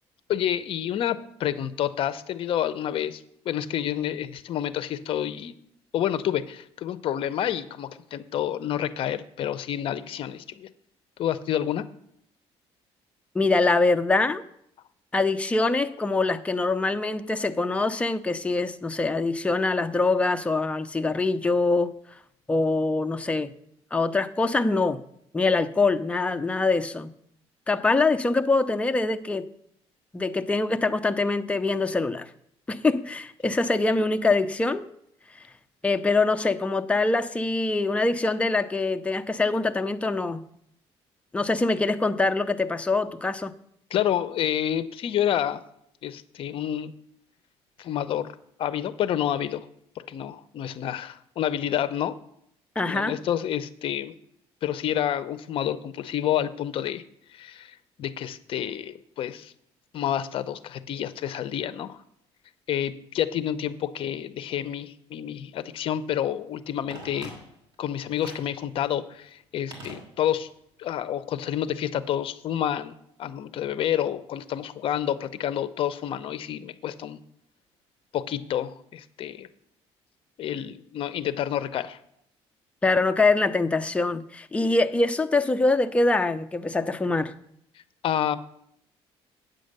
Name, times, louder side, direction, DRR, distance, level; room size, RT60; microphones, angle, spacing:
voice 1, 0.3-5.5 5.9-10.7 11.2-11.8 43.9-45.6 46.0-46.9 47.8-48.3 48.6-49.7 50.1-52.1 52.8-54.1 54.6-57.0 57.3-59.5 59.9-62.0 62.7-67.3 67.8-70.5 70.8-77.2 78.1-79.5 80.4-82.0 88.0-88.4, left 10 dB, 55° left, 0.6 m, -29 dB
voice 2, 13.3-14.4 15.1-21.9 22.5-23.5 23.9-25.0 25.3-27.1 27.7-29.5 30.1-32.3 32.7-34.9 35.8-40.4 41.3-43.5 52.8-53.2 82.8-87.3, left 3 dB, 10° left, 0.5 m, -24 dB
Telephone, 66.9-67.8 68.2-68.6 69.7-70.6 70.8-70.9, right 1 dB, 40° right, 2.9 m, -43 dB
8.7 x 6.4 x 6.5 m
cardioid pair, 135°, 11 cm